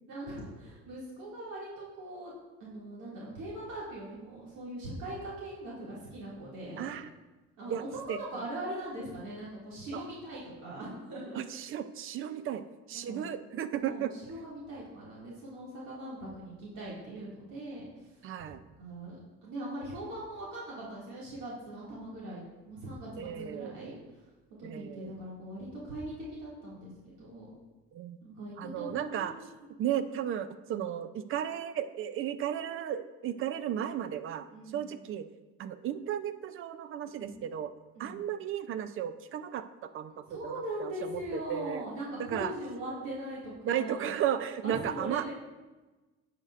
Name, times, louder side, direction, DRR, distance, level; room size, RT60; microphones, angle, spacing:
voice 1, 0.1-2.3 2.6-6.9 7.6-11.4 13.1-13.2 13.8-18.1 18.8-24.0 24.6-27.6 28.2-29.8 34.5-35.0 37.2-37.4 37.9-38.3 40.3-44.1 44.6-45.3, right 1 dB, 75° right, -6 dB, 2.3 m, -41 dB
voice 2, 6.8-7.1 7.7-7.8 8.1-8.2 9.9-10.0 11.3-14.1 18.2-18.6 23.2-23.9 24.6-25.1 27.9-28.2 28.6-29.3 29.8-34.5 34.7-35.3 35.6-37.7 38.0-39.6 39.9-41.9 42.3-42.5 43.7-45.3, right 10 dB, 45° right, 12 dB, 0.5 m, -34 dB
10.5 x 6.7 x 2.5 m, 1.2 s
cardioid pair, 130°, 30 cm